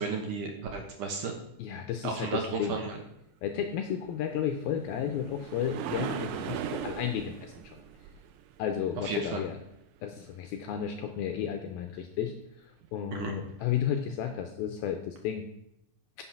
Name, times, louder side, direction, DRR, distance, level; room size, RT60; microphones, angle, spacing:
voice 1, 0.0-1.4 2.0-3.0 9.0-9.4 13.1-13.3, right 5 dB, 70° right, 2 dB, 2.0 m, -33 dB
voice 2, 1.6-2.8 3.4-7.8 8.6-9.6 10.0-15.5, left 9 dB, 80° left, 5 dB, 2.2 m, -33 dB
sound 1, 4.3-9.6 13.5-13.6 14.2-14.3, right 10 dB, 90° right, 2.0 m, -39 dB
10.0 x 6.3 x 5.9 m, 0.80 s
omnidirectional pair, 5.0 m